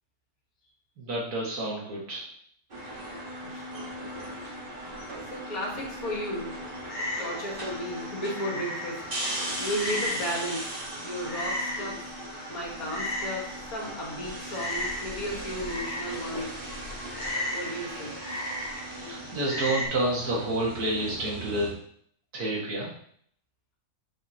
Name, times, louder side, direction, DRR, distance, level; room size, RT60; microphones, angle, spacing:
voice 1, 1.0-2.2 19.0-21.7 22.3-22.9, right 1 dB, 85° right, -4 dB, 2.3 m, -29 dB
sound 1, 2.7-21.7, right 1 dB, 35° right, 1.6 m, -38 dB
voice 2, 3.4-3.8 4.5-4.7 5.3-6.6 7.2-9.1 9.6-10.8 11.0-12.1 12.5-16.6 17.5-18.1, equal, 70° left, -3 dB, 2.3 m, -34 dB
Frog, 6.9-19.9, left 1 dB, 35° left, 1.3 m, -37 dB
7.6 x 5.0 x 2.8 m, 0.64 s
omnidirectional pair, 1.6 m